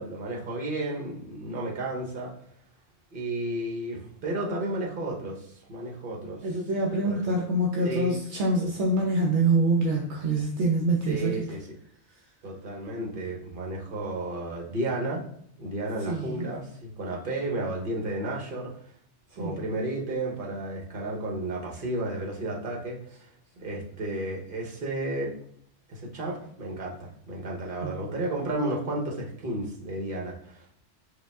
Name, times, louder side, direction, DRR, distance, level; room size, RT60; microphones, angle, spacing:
voice 1, 0.0-2.3 3.1-6.4 7.0-7.2 7.8-8.2 11.1-11.7 12.4-15.2 15.6-18.7 19.4-25.3 25.9-30.8, right 1 dB, 50° right, -1 dB, 1.1 m, -32 dB
voice 2, 6.4-11.4 16.1-16.5 19.4-19.6 27.8-28.0, right 2 dB, 70° right, 0 dB, 0.9 m, -25 dB
4.9 x 2.3 x 3.4 m, 0.66 s
omnidirectional pair, 1.2 m